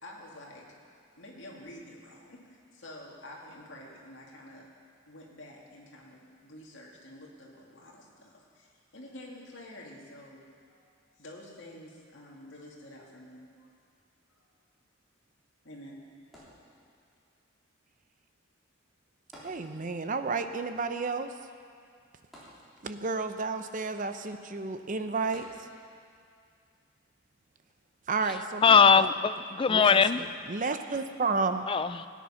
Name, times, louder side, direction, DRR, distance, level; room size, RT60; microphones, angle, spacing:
voice 1, 0.0-0.7 1.2-4.7 5.1-10.4 10.7-10.9 11.2-13.7 15.6-16.2, left 1 dB, 60° left, -3 dB, 2.3 m, -48 dB
sound 1, 16.3-17.2 19.3-20.2 20.5-20.6 22.3-23.2 25.3-26.0 26.7-26.8, equal, ahead, 3.3 m, -52 dB
voice 2, 19.4-21.3 22.8-25.5 28.1-29.1 29.7-31.7, right 4 dB, 40° right, 8 dB, 0.6 m, -32 dB
voice 3, 28.6-30.2 31.7-32.1, left 6 dB, 25° left, 13 dB, 0.3 m, -21 dB
17.0 x 9.3 x 5.7 m, 2.3 s
head